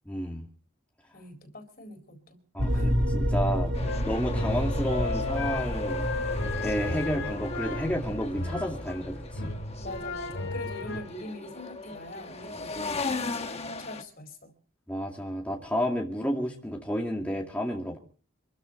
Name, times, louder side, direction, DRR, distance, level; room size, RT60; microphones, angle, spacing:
voice 1, 0.1-0.4 2.5-9.5 14.9-18.0, equal, 5° left, -1 dB, 2.3 m, -31 dB
voice 2, 1.1-2.4 2.7-2.9 9.8-14.5, left 1 dB, 45° left, 7 dB, 4.0 m, -43 dB
sound 1, 2.6-10.9, equal, 55° right, 3.1 m, -31 dB
sound 2, 3.7-14.0, left 3 dB, 30° left, 1.2 m, -37 dB
sound 3, 3.8-9.0 9.3-11.1, left 3 dB, 75° left, 2.6 m, -35 dB
26.5 x 13.5 x 4.0 m, 0.42 s
head